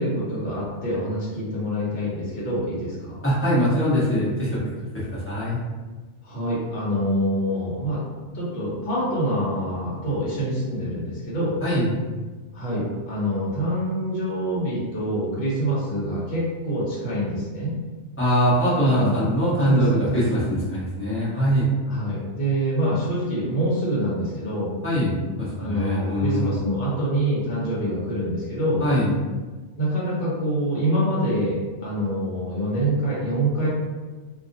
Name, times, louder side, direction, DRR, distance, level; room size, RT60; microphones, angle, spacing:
voice 1, 0.0-3.2 6.2-8.0 8.3-11.6 12.5-17.7 19.0-19.3 19.6-20.1 21.9-24.7 25.5-28.8 29.8-33.7, equal, 55° left, -7 dB, 1.1 m, -26 dB
voice 2, 3.2-4.6 4.9-5.6 11.6-11.9 18.2-21.7 24.8-25.1 25.4-26.6 28.8-29.1, equal, 10° left, -10 dB, 0.8 m, -22 dB
2.5 x 2.5 x 2.6 m, 1.3 s
omnidirectional pair, 1.2 m